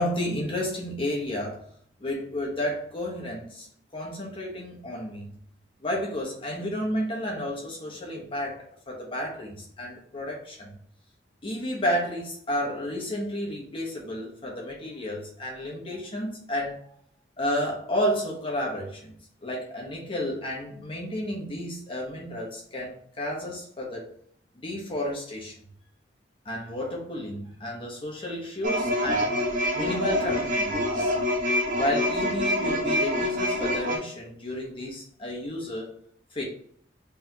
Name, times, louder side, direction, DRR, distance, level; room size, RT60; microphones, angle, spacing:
voice 1, 0.0-1.7 2.0-3.7 3.9-5.3 5.8-10.7 11.4-16.8 17.4-19.2 19.4-24.1 24.5-25.5 26.4-29.4 29.7-31.1 31.8-35.9 36.3-36.4, equal, 30° left, -3 dB, 1.1 m, -31 dB
sound 1, 28.6-34.0, equal, 45° right, 0.9 m, -26 dB
4.1 x 3.4 x 2.8 m, 0.63 s
head